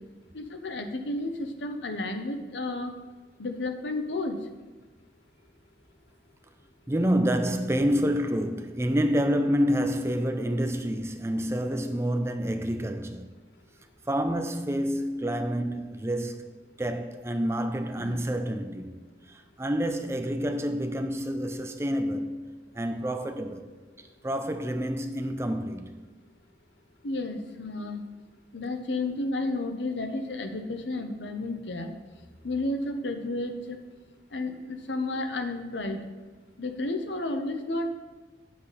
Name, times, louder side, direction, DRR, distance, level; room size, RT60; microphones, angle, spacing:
voice 1, 0.3-2.9 3.4-4.4 18.0-18.2 27.0-28.0 28.5-31.9 32.4-33.8 34.3-36.0 36.6-37.9, left 2 dB, 85° left, 0.9 m, -32 dB
voice 2, 6.9-13.3 14.1-16.5 16.8-22.4 22.7-23.7 24.0-26.1, equal, 15° right, 0.5 m, -28 dB
8.3 x 7.7 x 4.1 m
head